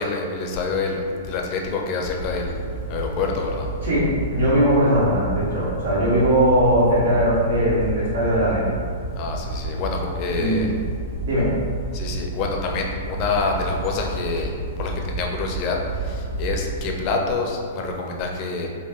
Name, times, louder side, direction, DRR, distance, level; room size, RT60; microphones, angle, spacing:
voice 1, 0.0-2.5 2.9-3.7 9.2-10.7 11.9-14.5 14.8-18.7, left 4 dB, 40° left, 1 dB, 0.4 m, -26 dB
sound 1, 2.2-16.9, right 2 dB, 30° right, 1.3 m, -31 dB
voice 2, 3.8-8.7 10.4-10.6 11.2-11.5, equal, 75° right, -7 dB, 1.1 m, -20 dB
3.4 x 2.1 x 2.3 m, 2.1 s
hypercardioid pair, 130°, 0 cm